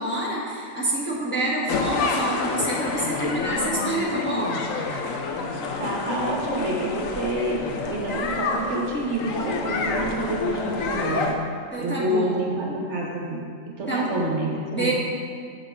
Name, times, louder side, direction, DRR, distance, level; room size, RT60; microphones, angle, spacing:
voice 1, 0.0-4.6 11.7-12.4 13.9-14.3 14.7-14.9, right 1 dB, 10° left, -6 dB, 1.4 m, -27 dB
sound 1, 1.7-11.4, left 4 dB, 75° left, 1.1 m, -28 dB
voice 2, 5.8-11.3 11.8-14.9, right 1 dB, 60° right, -2 dB, 1.4 m, -28 dB
8.8 x 7.4 x 3.7 m, 2.3 s
omnidirectional pair, 1.4 m